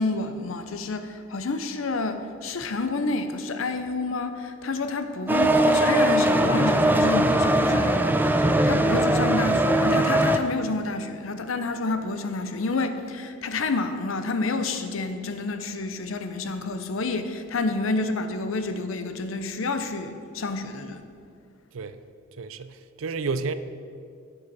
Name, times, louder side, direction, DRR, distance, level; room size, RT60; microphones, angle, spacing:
voice 1, 0.0-21.0, left 3 dB, 75° left, 9 dB, 0.7 m, -29 dB
sound 1, 5.3-10.4, right 1 dB, 10° right, 0.4 m, -20 dB
voice 2, 22.4-23.5, right 4 dB, 80° right, 12 dB, 0.5 m, -31 dB
11.0 x 6.9 x 4.2 m, 2.3 s
head